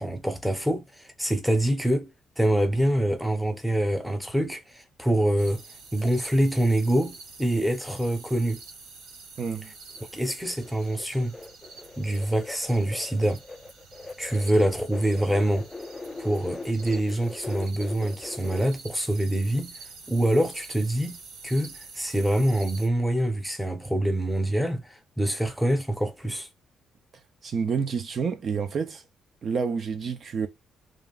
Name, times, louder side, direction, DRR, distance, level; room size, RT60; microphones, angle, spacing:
voice 1, 0.0-2.1 2.4-5.6 5.9-8.6 10.1-11.3 12.0-13.4 14.2-15.7 16.2-19.7 20.1-21.2 21.4-26.5, right 1 dB, ahead, 0.8 m, -25 dB
sound 1, 5.4-22.9, right 4 dB, 90° right, 1.0 m, -47 dB
voice 2, 9.4-9.7 27.4-29.0 29.4-30.5, right 6 dB, 55° right, 0.5 m, -28 dB
sound 2, 9.9-18.7, left 3 dB, 20° left, 0.3 m, -41 dB
3.3 x 2.5 x 2.4 m
cardioid pair, 90°, 0 cm